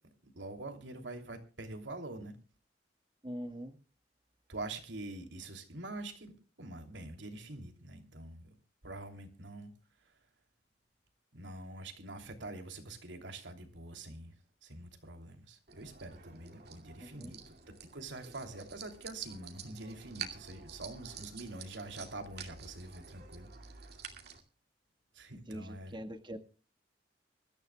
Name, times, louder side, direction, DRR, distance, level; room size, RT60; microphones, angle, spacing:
voice 1, 0.2-2.3 4.5-8.5 8.8-9.7 11.3-14.3 14.6-17.4 17.9-24.0 25.1-26.0, right 2 dB, 90° right, 5 dB, 3.0 m, -45 dB
voice 2, 3.2-3.8 17.0-17.4 25.5-26.4, equal, 25° right, 6 dB, 1.6 m, -43 dB
sound 1, 15.7-24.4, right 7 dB, 60° right, 2.5 m, -49 dB
24.5 x 13.5 x 2.3 m, 0.35 s
head